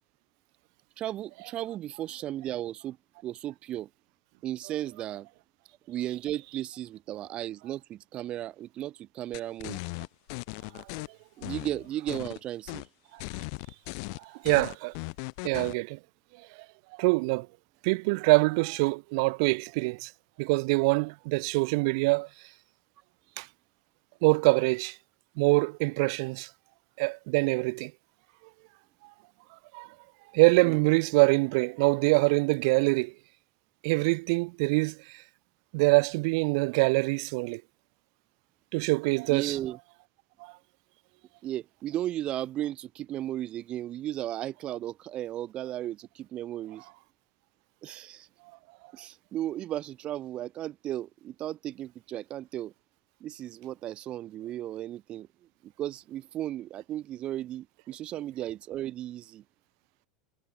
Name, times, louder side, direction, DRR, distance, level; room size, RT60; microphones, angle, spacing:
voice 1, 1.0-3.0 3.2-3.9 4.4-5.3 5.9-9.8 11.4-12.8 30.6-30.8 39.3-39.8 41.4-46.9 47.8-48.3 48.9-52.7 53.2-55.3 55.6-59.4, right 13 dB, 40° right, 1.3 m, -35 dB
sound 1, 9.3-11.1 11.4-12.4 12.7-12.9 13.2-15.8, left 35 dB, 65° left, 0.8 m, -38 dB
voice 2, 14.2-14.9 15.4-16.0 17.0-17.5 17.8-20.1 20.4-22.3 23.4-23.5 24.2-25.0 25.4-26.5 27.0-27.9 29.7-29.9 30.3-33.1 33.8-35.0 35.7-37.6 38.7-39.6 40.4-40.5, right 28 dB, 65° right, 0.5 m, -24 dB
hypercardioid pair, 110°, 3 cm